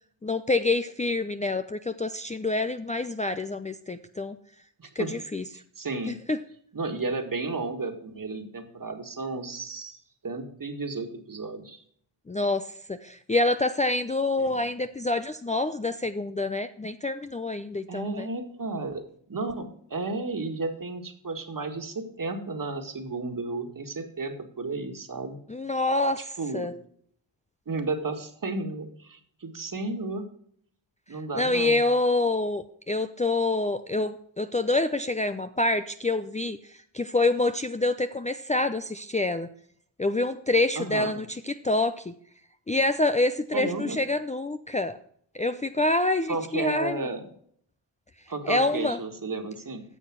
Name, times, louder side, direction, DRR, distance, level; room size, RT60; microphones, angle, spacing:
voice 1, 0.2-4.4 5.0-5.4 6.1-6.4 12.3-18.3 25.5-26.7 31.3-36.6 36.9-39.5 40.0-42.1 42.7-45.0 45.3-47.1 48.4-49.0, left 2 dB, 15° left, 9 dB, 0.6 m, -27 dB
voice 2, 4.8-5.1 5.8-6.2 6.7-10.0 10.2-11.8 14.4-14.6 17.9-19.0 19.3-25.4 26.4-26.7 27.7-30.2 31.1-31.8 40.8-41.1 43.5-44.0 46.3-47.3 48.3-49.8, right 3 dB, 40° right, 6 dB, 2.0 m, -33 dB
10.0 x 6.6 x 6.1 m, 0.63 s
supercardioid pair, 50°, 49 cm